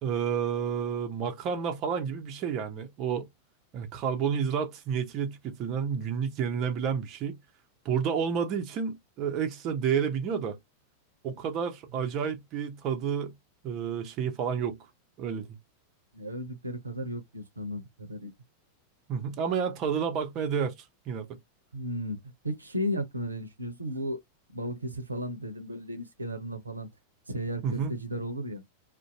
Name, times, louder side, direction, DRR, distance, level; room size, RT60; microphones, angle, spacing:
voice 1, 0.0-3.3 3.7-7.4 7.8-10.6 11.2-13.3 13.6-14.8 15.2-15.5 19.1-21.4 27.6-27.9, right 7 dB, 35° right, 0.6 m, -30 dB
voice 2, 16.1-18.3 21.7-24.2 24.5-26.9 27.3-28.6, equal, 80° right, 0.6 m, -35 dB
2.5 x 2.1 x 2.7 m
figure-of-eight pair, 90°, 0 cm